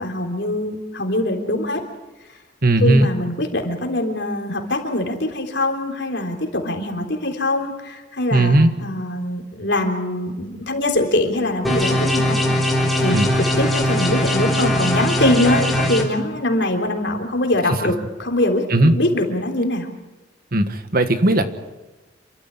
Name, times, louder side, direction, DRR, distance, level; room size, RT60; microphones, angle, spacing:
voice 1, 0.0-1.8 2.8-12.4 13.0-19.9, left 1 dB, 60° left, 2 dB, 3.7 m, -23 dB
voice 2, 2.6-3.1 8.3-8.7 13.1-13.3 18.7-19.0 20.5-21.5, right 1 dB, 50° right, 9 dB, 1.5 m, -16 dB
sound 1, 11.6-16.0, equal, ahead, 3.4 m, -20 dB
28.0 x 13.0 x 9.8 m, 1.2 s
head